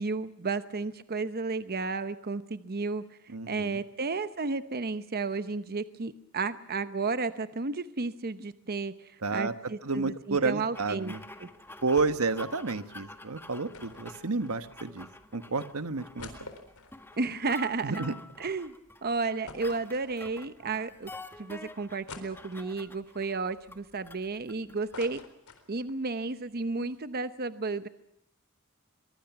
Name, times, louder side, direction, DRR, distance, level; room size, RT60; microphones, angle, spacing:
voice 1, 0.0-11.1 11.4-11.5 17.2-18.0 18.4-18.7 19.0-21.1 21.4-25.2 25.7-27.9, right 3 dB, 45° right, 11 dB, 0.9 m, -33 dB
voice 2, 3.3-3.8 9.2-9.5 9.8-11.2 11.8-16.5 17.8-18.1, right 3 dB, 85° right, 11 dB, 1.3 m, -31 dB
sound 1, 10.7-25.3, left 2 dB, 10° left, 1.6 m, -49 dB
sound 2, 12.0-12.4 12.7-12.8 13.7-15.0 15.5-15.6 15.9-18.4 18.8-18.9 19.5-20.6 21.1-21.2 22.1-22.9 23.5-24.4 24.7-26.0 26.4-26.5 26.7-27.0, left 3 dB, 85° left, 4.0 m, -48 dB
23.5 x 23.0 x 6.0 m, 0.81 s
head